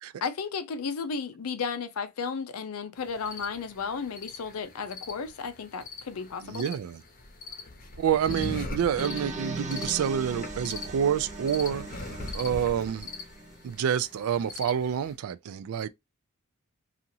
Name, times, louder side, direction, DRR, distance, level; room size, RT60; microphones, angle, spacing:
voice 1, 0.2-6.6, left 5 dB, 90° left, 0.5 m, -34 dB
sound 1, 3.0-15.1, left 3 dB, 40° left, 0.7 m, -41 dB
voice 2, 6.4-7.0 8.0-11.9 12.3-13.1 13.6-15.9, right 8 dB, 75° right, 0.3 m, -28 dB
sound 2, 9.0-13.9, right 3 dB, 35° right, 0.8 m, -39 dB
2.9 x 2.4 x 2.6 m
head